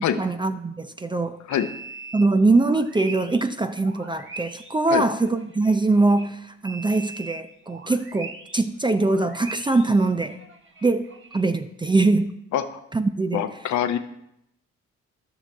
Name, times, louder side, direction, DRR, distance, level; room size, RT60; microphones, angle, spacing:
voice 1, 0.2-1.4 2.1-10.4 10.8-12.3 12.9-13.4, right 3 dB, 15° right, 9 dB, 0.5 m, -22 dB
sound 1, 1.5-6.3 6.6-8.7 8.9-11.4, right 3 dB, 40° right, 1.4 m, -42 dB
voice 2, 13.3-14.0, left 10 dB, 70° left, 9 dB, 0.9 m, -24 dB
13.5 x 5.8 x 3.5 m, 0.79 s
cardioid pair, 90°, 30 cm